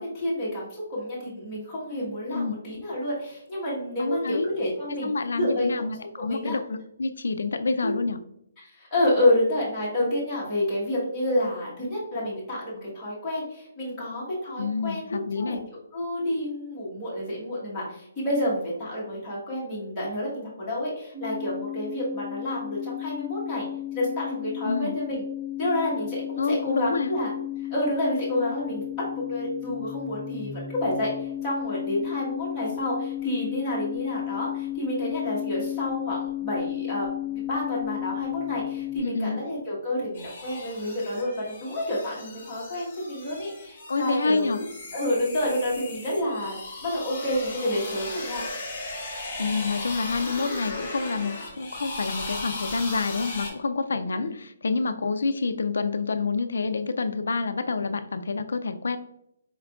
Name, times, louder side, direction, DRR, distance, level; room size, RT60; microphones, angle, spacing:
voice 1, 0.0-5.8 6.2-6.6 7.8-8.0 8.6-15.6 15.9-23.6 23.9-25.2 25.6-27.3 27.7-28.8 29.1-44.6 44.9-46.6 46.8-48.4 54.1-54.3, left 1 dB, 5° left, -10 dB, 1.3 m, -29 dB
voice 2, 4.0-4.5 5.0-8.2 14.6-15.6 24.6-24.9 26.4-27.1 39.0-39.4 43.9-44.6 49.4-59.0, left 4 dB, 85° left, 8 dB, 0.3 m, -28 dB
sound 1, 21.1-39.0, left 14 dB, 35° right, 1.1 m, -33 dB
sound 2, 40.1-53.5, left 2 dB, 25° left, 1.5 m, -37 dB
4.4 x 3.5 x 2.3 m, 0.77 s
hypercardioid pair, 180°, 0 cm